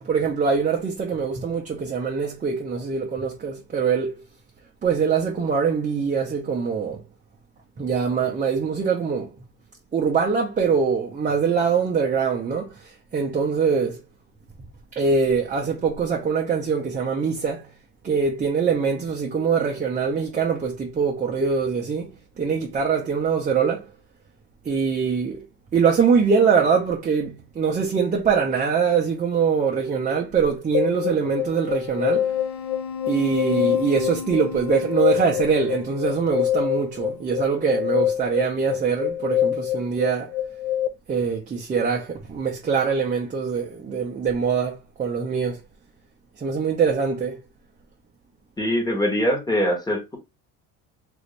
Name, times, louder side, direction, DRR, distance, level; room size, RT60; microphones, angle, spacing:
voice 1, 0.0-4.2 4.8-7.0 7.8-9.3 9.9-14.0 15.0-17.7 18.0-22.1 22.4-23.8 24.6-25.4 25.7-32.3 33.1-40.3 41.1-45.6 46.4-47.3, right 6 dB, 20° right, 0.5 m, -23 dB
sound 1, 30.7-40.9, left 10 dB, 80° left, 0.6 m, -25 dB
voice 2, 48.6-50.2, equal, 10° left, 1.0 m, -23 dB
3.1 x 2.5 x 3.1 m
cardioid pair, 125°, 37 cm